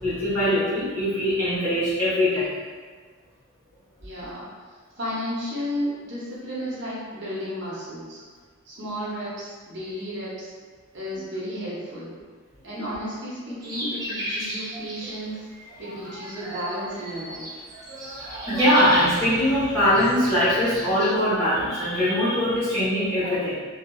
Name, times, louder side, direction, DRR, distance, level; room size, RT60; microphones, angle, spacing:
voice 1, 0.0-2.5 11.1-11.2 15.8-15.9 16.3-16.6 17.7-23.6, equal, 10° left, -13 dB, 1.0 m, -22 dB
voice 2, 4.0-4.5 5.0-8.2 8.6-10.5 10.9-12.1 12.6-15.4 15.8-17.6, equal, 55° right, -8 dB, 0.8 m, -33 dB
sound 1, 13.6-21.1, equal, 15° right, 0.5 m, -34 dB
2.7 x 2.4 x 2.5 m, 1.5 s
head